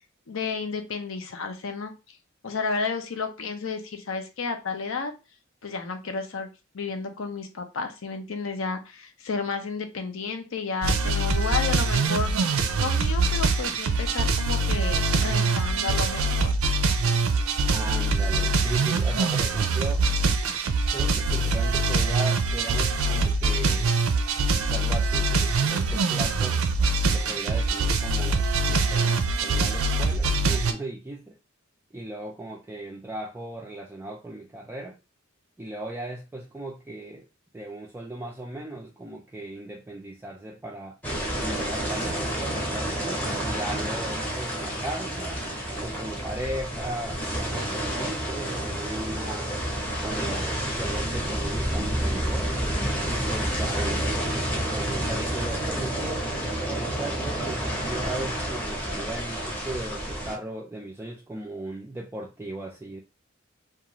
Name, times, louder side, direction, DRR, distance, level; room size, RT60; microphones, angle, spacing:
voice 1, 0.3-1.9 2.4-5.1 5.6-6.5 6.7-12.3 12.8-16.5, left 4 dB, 70° left, 6 dB, 0.6 m, -32 dB
sound 1, 10.8-30.7, right 3 dB, 85° right, 0.4 m, -24 dB
voice 2, 17.7-20.0 20.9-23.9 24.5-26.6 27.1-31.4 31.9-35.0 35.6-37.3 37.5-41.0 41.4-45.4 45.8-49.5 50.0-52.5 53.1-56.3 56.7-63.0, right 1 dB, 10° right, -2 dB, 0.3 m, -37 dB
sound 2, 41.0-60.4, right 1 dB, 5° left, 0.8 m, -29 dB
2.4 x 2.3 x 2.9 m, 0.29 s
head